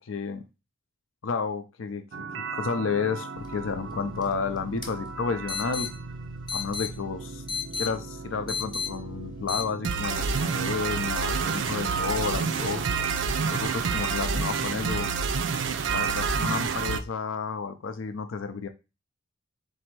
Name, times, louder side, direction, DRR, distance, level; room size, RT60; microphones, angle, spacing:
voice 1, 0.0-0.4 1.2-2.0 2.5-5.9 6.5-7.4 7.8-12.8 13.5-15.1 15.9-18.7, left 5 dB, 90° left, 0.5 m, -31 dB
sound 1, 2.1-17.0, right 5 dB, 70° right, 0.4 m, -30 dB
sound 2, 3.4-9.7, left 5 dB, 25° left, 0.8 m, -36 dB
4.1 x 2.7 x 4.4 m
head